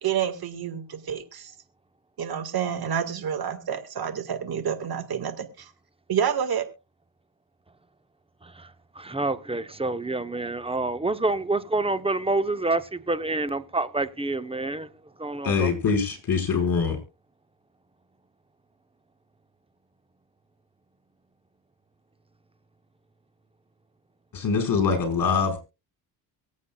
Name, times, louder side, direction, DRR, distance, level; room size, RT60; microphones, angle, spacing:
voice 1, 0.0-1.5 2.2-5.7 6.1-6.7, right 8 dB, 55° right, 1.8 m, -28 dB
voice 2, 8.4-14.9 15.2-15.7, right 2 dB, 15° right, 0.8 m, -28 dB
voice 3, 15.4-17.0 24.3-25.6, left 5 dB, 50° left, 5.3 m, -23 dB
23.5 x 8.4 x 2.3 m
cardioid pair, 95°, 44 cm